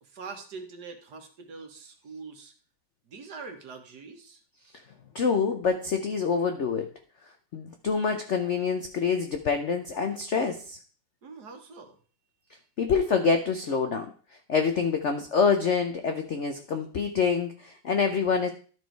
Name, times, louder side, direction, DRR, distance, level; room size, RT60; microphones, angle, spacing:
voice 1, 0.0-2.5 3.1-4.4 11.2-12.0, right 4 dB, 55° right, 5 dB, 1.7 m, -43 dB
voice 2, 5.1-6.9 7.5-10.8 12.8-14.1 14.5-18.5, left 5 dB, 70° left, 6 dB, 0.6 m, -26 dB
12.5 x 4.5 x 4.5 m, 0.41 s
omnidirectional pair, 2.2 m